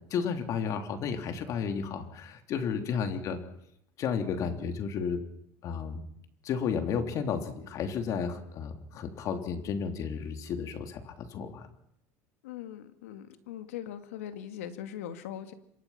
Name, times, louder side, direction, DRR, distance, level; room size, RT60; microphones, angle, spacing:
voice 1, 0.1-3.4 4.0-5.2 5.6-6.0 6.4-11.7, left 6 dB, 50° left, 6 dB, 3.4 m, -32 dB
voice 2, 2.6-2.9 12.4-15.5, left 10 dB, 85° left, 9 dB, 2.3 m, -41 dB
26.5 x 24.5 x 5.9 m, 0.76 s
supercardioid pair, 105°, 7 cm